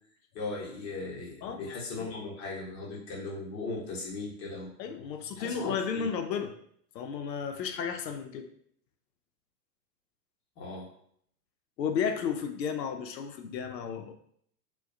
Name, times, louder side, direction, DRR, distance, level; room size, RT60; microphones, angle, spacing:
voice 1, 0.3-4.7 5.4-6.1 10.6-10.9, left 3 dB, 30° left, -3 dB, 0.8 m, -38 dB
voice 2, 1.4-1.7 2.0-2.1 4.8-6.5 6.9-8.5 11.8-14.1, left 7 dB, 80° left, 6 dB, 0.6 m, -33 dB
2.3 x 2.2 x 2.5 m, 0.65 s
hypercardioid pair, 105°, 50 cm